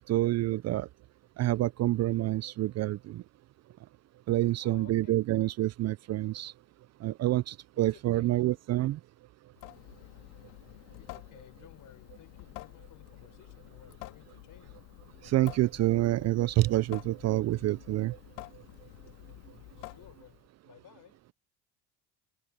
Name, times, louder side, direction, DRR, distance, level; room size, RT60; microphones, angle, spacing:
voice 1, 0.1-0.9 1.4-3.2 4.3-6.5 7.0-9.0 15.3-18.2, right 16 dB, 45° right, 0.4 m, -27 dB
voice 2, 4.6-5.1 7.7-8.6 11.0-14.9 19.8-21.2, left 11 dB, 50° left, 4.4 m, -57 dB
Water tap faucet / Sink (filling or washing) / Drip, 9.5-20.5, left 22 dB, 85° left, 2.6 m, -49 dB
supercardioid pair, 95°, 39 cm